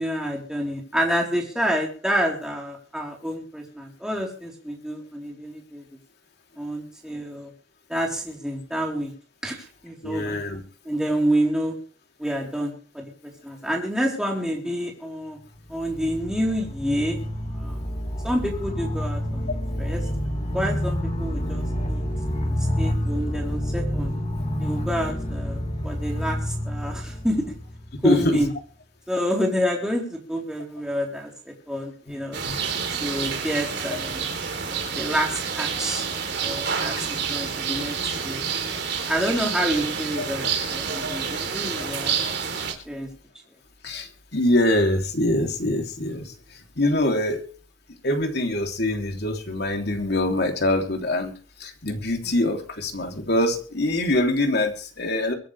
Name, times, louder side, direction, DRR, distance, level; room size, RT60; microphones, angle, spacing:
voice 1, 0.0-5.8 6.6-7.5 7.9-9.1 9.4-10.3 10.8-11.7 12.2-13.1 13.4-15.4 15.7-17.2 17.6-17.8 18.2-19.5 19.8-20.0 20.5-22.0 22.4-24.1 24.6-27.4 28.0-28.5 29.1-32.4 33.0-34.2 34.7-36.0 36.4-38.0 38.2-38.4 39.1-42.4 42.9-43.1, equal, 5° right, -1 dB, 4.0 m, -28 dB
voice 2, 10.0-10.6 28.0-28.4 32.4-32.6 40.2-40.5 43.8-46.3 46.8-47.5 48.0-51.3 51.6-55.3, left 1 dB, 55° left, 3 dB, 3.2 m, -24 dB
sound 1, 15.5-28.4, equal, 35° left, 2.5 m, -28 dB
sound 2, 32.3-42.7, right 6 dB, 60° right, 3.5 m, -28 dB
23.5 x 11.0 x 3.4 m, 0.41 s
head